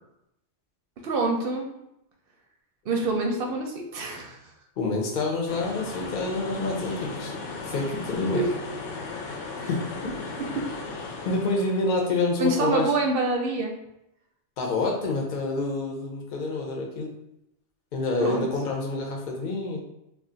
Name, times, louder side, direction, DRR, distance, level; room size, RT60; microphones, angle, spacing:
voice 1, 1.0-1.7 2.9-4.4 8.3-8.5 9.6-9.7 12.4-13.7 18.2-18.5, right 3 dB, 60° right, 2 dB, 0.7 m, -26 dB
voice 2, 4.8-7.3 7.6-8.4 9.7-10.1 11.2-12.9 14.6-17.1 17.9-19.8, left 3 dB, 50° left, 0 dB, 0.7 m, -27 dB
sound 1, 5.5-12.1, left 3 dB, 80° left, 0.9 m, -36 dB
2.4 x 2.4 x 3.8 m, 0.84 s
omnidirectional pair, 1.2 m